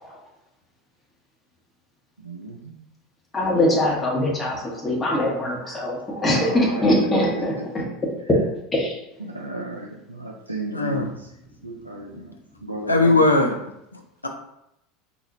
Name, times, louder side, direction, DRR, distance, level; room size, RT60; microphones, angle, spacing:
voice 1, 2.2-2.7 6.3-6.8 9.2-11.3 11.6-12.3 12.6-13.2, right 2 dB, 85° right, -2 dB, 0.4 m, -33 dB
voice 2, 3.3-7.8 8.7-9.0, left 1 dB, 20° left, -2 dB, 1.0 m, -22 dB
voice 3, 10.7-11.1 12.9-13.6 13.9-14.3, left 2 dB, 80° left, 4 dB, 0.4 m, -19 dB
3.8 x 2.9 x 2.7 m, 0.82 s
figure-of-eight pair, 75°, 0 cm